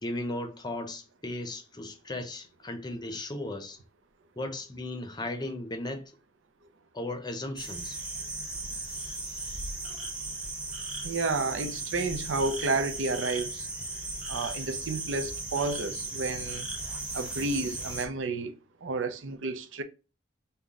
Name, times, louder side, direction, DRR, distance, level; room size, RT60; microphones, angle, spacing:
voice 1, 0.0-3.8 4.4-6.1 6.9-8.0, left 1 dB, 20° left, 0.6 m, -36 dB
sound 1, 7.6-18.1, right 2 dB, 5° right, 0.9 m, -36 dB
voice 2, 11.0-13.7 14.3-16.7 17.1-19.8, right 3 dB, 75° right, 0.6 m, -31 dB
5.5 x 2.2 x 3.6 m
head